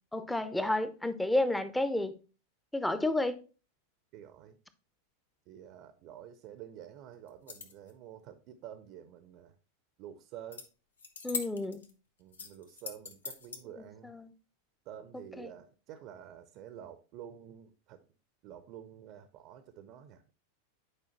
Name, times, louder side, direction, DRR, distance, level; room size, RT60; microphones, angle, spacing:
voice 1, 0.1-2.2 2.7-3.4 11.2-11.8 14.0-14.3 15.4-15.5, left 2 dB, 5° left, 0.7 m, -31 dB
voice 2, 4.1-4.6 5.5-9.5 10.0-10.7 12.2-14.2 14.8-18.1 18.4-20.2, right 10 dB, 40° right, 0.7 m, -49 dB
sound 1, 7.3-7.9 10.5-10.7 11.0-11.9 12.3-13.6, left 5 dB, 70° left, 1.0 m, -41 dB
9.6 x 5.0 x 3.0 m
figure-of-eight pair, 90°, 0 cm